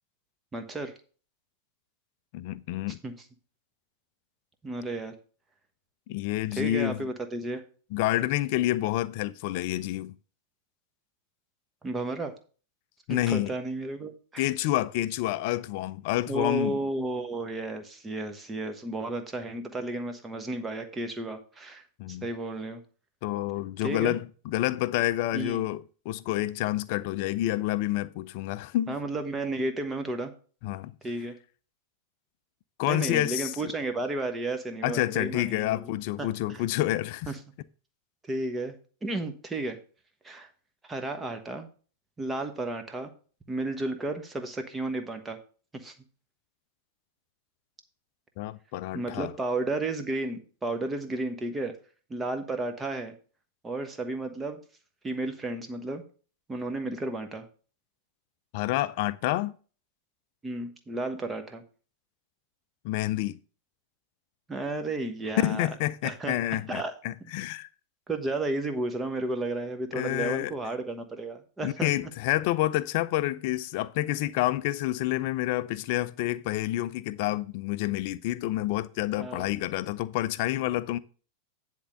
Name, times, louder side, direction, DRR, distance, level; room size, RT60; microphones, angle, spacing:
voice 1, 0.5-0.9 3.0-3.1 4.6-5.1 6.5-7.6 11.8-12.3 13.1-14.4 16.3-22.8 23.8-24.2 25.3-25.6 28.9-30.3 31.0-31.4 32.9-35.8 36.2-36.6 37.3-37.4 38.2-38.8 39.0-39.8 40.2-40.5 40.9-41.7 42.2-43.1 43.5-45.4 45.7-45.9 48.9-51.7 52.1-53.1 53.6-54.6 55.0-56.0 56.5-57.5 60.4-61.6 64.5-65.7 66.0-66.4 66.7-66.9 68.1-71.9 79.2-79.5, right 2 dB, 15° right, 1.2 m, -33 dB
voice 2, 2.3-3.0 6.1-7.1 7.9-10.1 13.1-13.5 14.4-16.8 22.0-22.3 23.2-29.0 30.6-30.9 32.8-33.7 34.8-37.3 48.4-49.3 58.5-59.6 62.8-63.4 65.4-67.7 69.9-70.5 71.6-81.0, left 15 dB, 45° left, 0.5 m, -28 dB
10.0 x 3.7 x 6.5 m
figure-of-eight pair, 90°, 0 cm